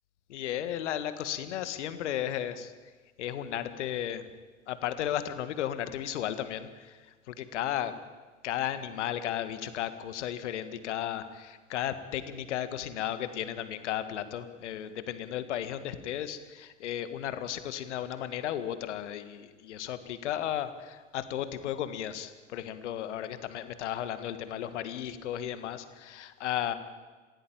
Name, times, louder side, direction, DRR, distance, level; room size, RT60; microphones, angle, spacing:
voice 1, 0.3-2.7 3.2-4.3 4.7-7.0 7.3-7.9 8.4-26.7, left 11 dB, 60° left, 12 dB, 1.9 m, -34 dB
25.5 x 16.0 x 8.9 m, 1.4 s
figure-of-eight pair, 80°, 39 cm